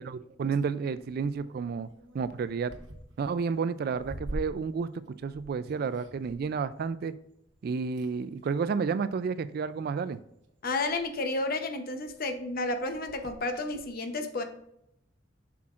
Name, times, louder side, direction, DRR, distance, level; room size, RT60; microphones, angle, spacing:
voice 1, 0.0-1.9 2.1-2.7 3.2-7.1 7.6-10.2, right 5 dB, 50° right, 14 dB, 0.3 m, -31 dB
sound 1, 0.7-7.6 7.9-8.6 9.5-9.9 10.4-10.5 10.7-13.9, right 1 dB, 75° right, 0.9 m, -46 dB
voice 2, 10.6-14.4, left 2 dB, 50° left, 7 dB, 0.8 m, -31 dB
7.3 x 6.0 x 2.4 m, 0.78 s
head